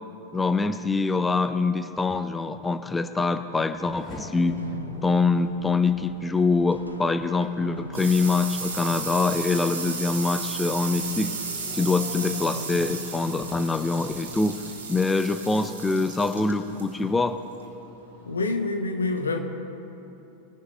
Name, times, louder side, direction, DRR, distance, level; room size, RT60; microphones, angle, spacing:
voice 1, 0.3-4.6 5.0-11.3 11.7-14.6 14.9-17.4, left 3 dB, 10° left, 9 dB, 0.4 m, -24 dB
Race car auto racing / Accelerating revving vroom, 2.7-15.8 16.2-16.9, left 1 dB, 35° left, 2.7 m, -50 dB
sound 1, 4.2-15.0, left 1 dB, 90° right, 0.6 m, -44 dB
sound 2, 7.2-18.5, right 4 dB, 70° right, 1.5 m, -35 dB
voice 2, 18.3-19.4, left 3 dB, 75° left, 6 dB, 0.9 m, -26 dB
21.5 x 11.0 x 2.2 m, 2.9 s
figure-of-eight pair, 90°, 0 cm